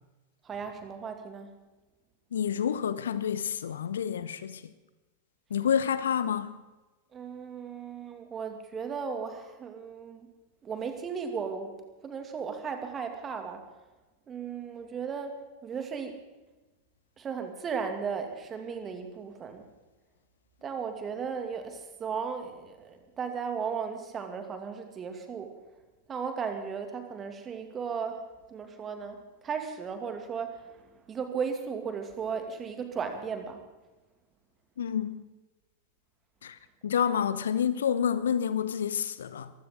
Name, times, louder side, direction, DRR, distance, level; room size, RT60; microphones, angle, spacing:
voice 1, 0.4-1.6 7.1-10.3 10.6-13.6 14.3-16.2 17.2-19.6 20.6-25.6 26.1-28.2 28.5-33.6, right 6 dB, 25° right, 2.4 m, -36 dB
voice 2, 2.3-4.6 5.5-6.6 34.8-35.2 36.4-39.5, left 8 dB, 65° left, 0.8 m, -29 dB
23.0 x 16.0 x 3.8 m
figure-of-eight pair, 90°, 0 cm